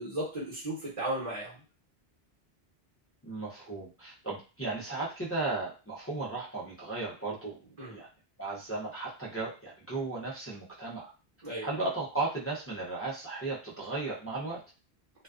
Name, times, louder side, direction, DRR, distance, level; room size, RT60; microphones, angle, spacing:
voice 1, 0.0-1.6 7.8-8.0 11.4-11.7, right 1 dB, 35° right, -6 dB, 1.0 m, -35 dB
voice 2, 3.2-8.1 8.4-11.1 11.6-14.6, right 3 dB, 20° left, -6 dB, 0.4 m, -35 dB
2.3 x 2.3 x 2.3 m, 0.33 s
omnidirectional pair, 1.1 m